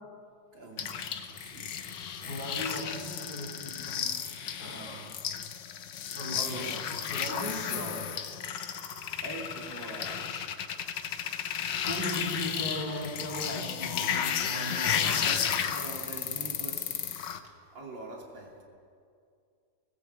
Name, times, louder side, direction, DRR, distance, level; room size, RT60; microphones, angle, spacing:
voice 1, 0.5-2.4 4.6-5.1 6.4-6.7 7.3-8.1 9.2-10.5 11.2-11.3 14.8-17.1 17.7-18.6, right 2 dB, 80° right, -1 dB, 3.8 m, -43 dB
sound 1, 0.8-17.4, left 8 dB, 75° left, 1.7 m, -33 dB
voice 2, 2.3-4.1 4.5-5.1 6.1-7.9 11.8-15.3, left 1 dB, 25° left, -2 dB, 4.6 m, -38 dB
19.0 x 19.0 x 8.1 m, 2.3 s
omnidirectional pair, 2.0 m